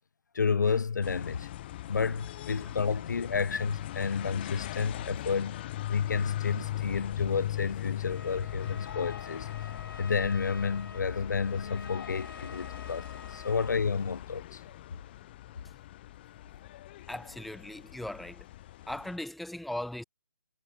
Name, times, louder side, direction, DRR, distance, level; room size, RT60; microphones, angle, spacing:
voice 1, 0.3-1.5 1.9-9.5 10.0-14.6, left 5 dB, 60° left, 0.8 m, -31 dB
sound 1, 1.0-19.2, left 14 dB, 30° left, 1.1 m, -40 dB
Trumpet, 8.0-13.9, left 3 dB, 75° left, 8.0 m, -49 dB
voice 2, 17.1-18.5 18.9-20.0, left 1 dB, ahead, 0.8 m, -39 dB
figure-of-eight pair, 140°, 11 cm